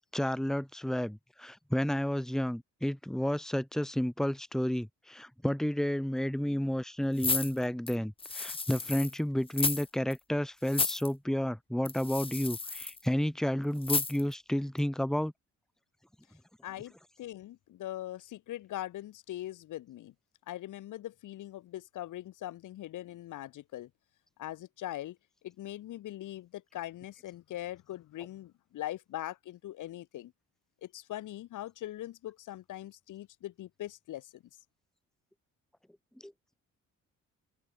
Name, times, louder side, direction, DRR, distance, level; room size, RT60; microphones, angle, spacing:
voice 1, 0.1-15.3 36.2-36.3, equal, ahead, 2.0 m, -31 dB
sound 1, 7.2-9.1 9.5-9.9 10.1-10.2 10.6-11.1 11.8-13.0 13.8-14.3 14.8-14.9, left 4 dB, 20° left, 0.9 m, -32 dB
voice 2, 16.6-16.9 17.2-20.1 20.5-23.9 24.4-25.2 25.4-30.3 30.8-34.4, left 14 dB, 80° left, 5.8 m, -41 dB
cardioid pair, 90°, 30 cm